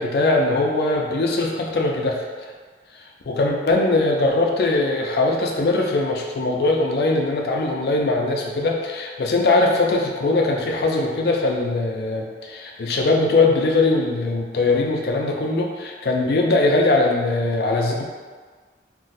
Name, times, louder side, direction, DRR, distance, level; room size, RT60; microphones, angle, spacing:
voice 1, 0.0-2.2 3.3-18.0, left 2 dB, 65° left, 0 dB, 0.4 m, -21 dB
2.5 x 2.1 x 3.9 m, 1.5 s
head